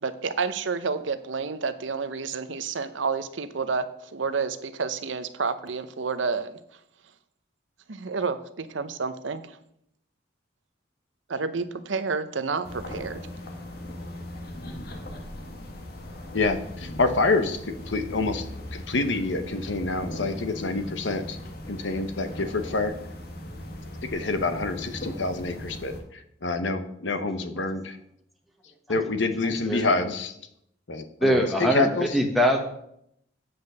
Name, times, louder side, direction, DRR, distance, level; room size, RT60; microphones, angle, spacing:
voice 1, 0.0-6.6 7.9-9.6 11.3-13.2, right 4 dB, 80° right, 12 dB, 0.7 m, -30 dB
sound 1, 12.6-26.0, left 1 dB, 55° left, 1.5 m, -39 dB
voice 2, 16.3-17.6 17.9-18.4 18.7-21.4 21.7-22.9 24.1-28.0 28.9-30.3 30.9-32.2, left 3 dB, 75° left, 9 dB, 1.0 m, -27 dB
voice 3, 31.2-32.6, equal, ahead, 1 dB, 1.0 m, -22 dB
8.5 x 5.3 x 6.6 m, 0.74 s
head